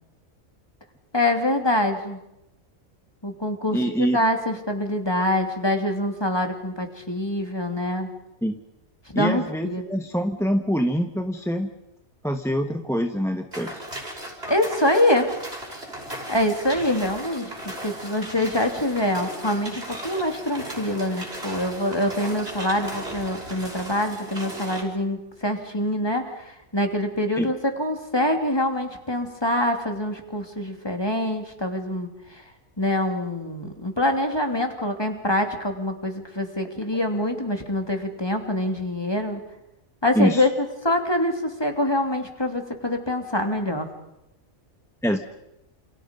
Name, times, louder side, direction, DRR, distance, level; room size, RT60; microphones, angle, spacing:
voice 1, 1.1-2.2 3.2-8.1 9.1-9.8 14.5-15.3 16.3-32.4 32.8-39.4 40.0-40.5 40.8-43.9, left 1 dB, 15° left, 4 dB, 3.0 m, -25 dB
voice 2, 3.7-4.2 8.4-8.5 9.1-11.7 12.2-13.8 27.4-27.5 40.2-40.5 45.0-45.2, equal, ahead, 5 dB, 1.0 m, -24 dB
sound 1, 13.5-24.8, right 1 dB, 50° right, 6.2 m, -36 dB
29.0 x 28.5 x 5.4 m, 0.87 s
omnidirectional pair, 1.4 m